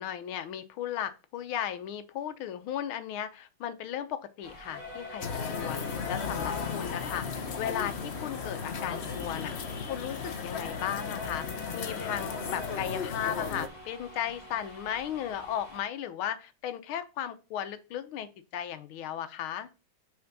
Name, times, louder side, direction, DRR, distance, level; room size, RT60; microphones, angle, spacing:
voice 1, 0.0-7.3 7.6-9.5 9.9-11.4 11.7-19.7, left 10 dB, 80° left, 1.7 m, -36 dB
sound 1, 4.4-15.8, left 2 dB, 20° left, 2.6 m, -45 dB
sound 2, 5.2-13.7, left 6 dB, 50° left, 0.8 m, -35 dB
6.1 x 4.4 x 6.0 m
omnidirectional pair, 2.2 m